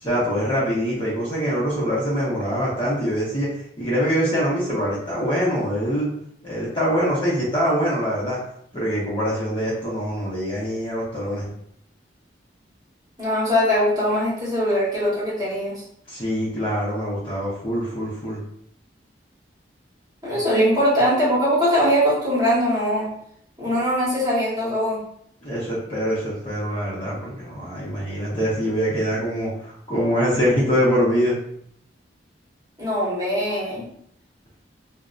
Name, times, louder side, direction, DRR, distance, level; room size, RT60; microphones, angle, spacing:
voice 1, 0.0-3.5 3.8-6.1 6.4-8.4 8.7-11.5 16.1-18.4 25.4-31.4, equal, 30° left, -7 dB, 0.7 m, -24 dB
voice 2, 13.2-15.8 20.2-23.1 23.6-25.0 32.8-33.9, equal, 20° right, -8 dB, 1.1 m, -21 dB
2.5 x 2.1 x 2.4 m, 0.69 s
head